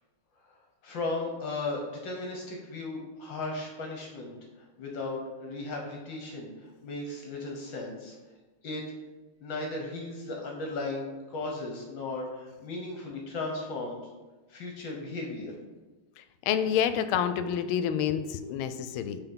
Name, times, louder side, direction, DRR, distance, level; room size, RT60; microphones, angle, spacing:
voice 1, 0.8-4.3 4.8-8.2 8.6-8.8 9.4-11.0 11.3-14.0 14.5-15.5, left 2 dB, 65° left, 1 dB, 1.6 m, -36 dB
voice 2, 16.2-19.2, left 8 dB, 85° left, 10 dB, 1.4 m, -28 dB
5.7 x 4.3 x 5.4 m, 1.2 s
omnidirectional pair, 2.3 m